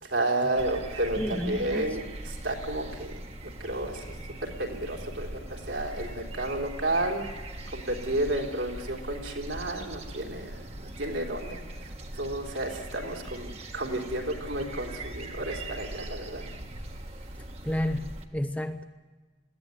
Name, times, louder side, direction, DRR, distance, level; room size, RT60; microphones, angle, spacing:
voice 1, 0.0-3.2 3.6-4.1 4.4-7.3 7.7-16.5, right 1 dB, 80° right, 1 dB, 3.5 m, -32 dB
sound 1, 0.6-18.3, right 1 dB, 30° right, 1.4 m, -41 dB
voice 2, 1.2-1.9 17.6-18.8, left 1 dB, 5° left, 9 dB, 0.6 m, -31 dB
21.5 x 16.0 x 9.7 m, 1.3 s
head